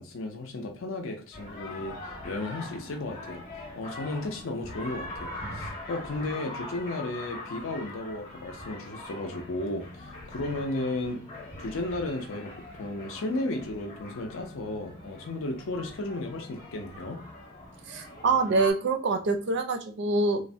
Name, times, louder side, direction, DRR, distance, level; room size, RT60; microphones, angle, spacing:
voice 1, 0.0-3.4 3.7-11.2 11.6-12.5 12.8-17.2, left 2 dB, 65° left, 3 dB, 0.5 m, -34 dB
sound 1, 1.3-18.7, left 2 dB, 30° left, 0.7 m, -42 dB
voice 2, 17.9-20.4, right 3 dB, 55° right, 6 dB, 0.4 m, -25 dB
3.1 x 2.1 x 2.6 m, 0.37 s
head